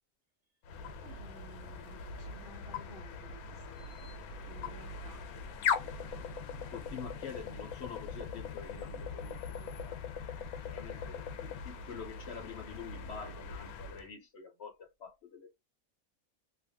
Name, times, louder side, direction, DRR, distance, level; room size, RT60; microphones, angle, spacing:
sound 1, 0.6-14.1, left 6 dB, 85° left, 1.1 m, -40 dB
voice 1, 1.0-4.2 4.4-5.2 6.2-6.3, right 4 dB, 60° right, 0.7 m, -56 dB
voice 2, 6.7-10.3 10.7-15.5, left 6 dB, 60° left, 0.8 m, -47 dB
2.7 x 2.5 x 2.6 m
omnidirectional pair, 1.5 m